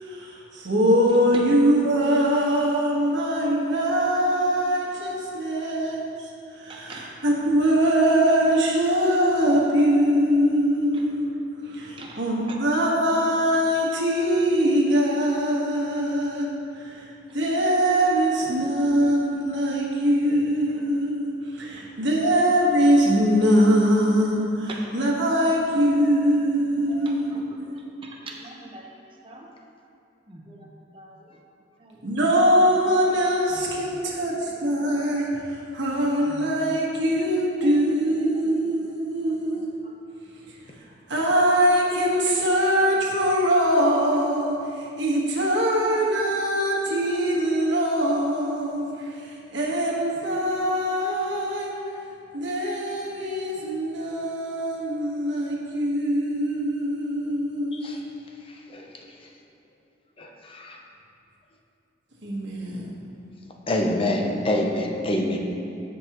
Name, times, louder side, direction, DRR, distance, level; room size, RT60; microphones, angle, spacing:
voice 1, 0.0-6.1 6.6-11.2 11.6-16.5 16.8-17.0 17.3-27.7 32.0-39.6 41.1-51.8 52.3-58.0 62.2-62.9, equal, 80° right, -3 dB, 1.5 m, -22 dB
voice 2, 6.7-7.1 10.9-11.0 12.0-12.2 12.5-12.6 18.9-19.1 20.3-20.4 21.7-21.8 22.2-22.3 24.7-24.9 26.0-26.4 26.9-27.5 27.7-29.5 30.3-31.4 31.8-32.0 33.5-33.7 34.4-35.2 36.2-36.4 37.6-37.7 38.2-38.7 39.2-39.9, right 2 dB, 30° right, -1 dB, 0.9 m, -44 dB
voice 3, 60.2-60.8 63.7-65.4, left 1 dB, 30° left, 1 dB, 0.7 m, -26 dB
14.0 x 5.3 x 3.0 m, 2.6 s
head